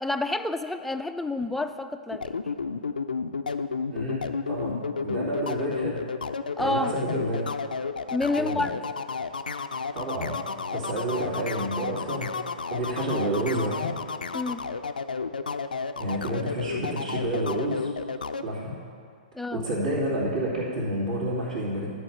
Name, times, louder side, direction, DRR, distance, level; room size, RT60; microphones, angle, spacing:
voice 1, 0.0-2.3 6.6-7.0 8.1-8.7 14.3-14.7 19.4-19.6, left 2 dB, 5° left, 8 dB, 0.3 m, -29 dB
sound 1, 2.1-18.5, left 5 dB, 80° left, 0.4 m, -31 dB
voice 2, 3.9-4.2 4.5-6.0 6.6-7.4 8.3-8.6 9.9-10.4 10.7-13.9 16.0-17.9 18.4-18.8 19.5-21.9, right 1 dB, 60° right, -11 dB, 2.5 m, -29 dB
10.0 x 4.6 x 7.2 m, 2.3 s
figure-of-eight pair, 115°, 5 cm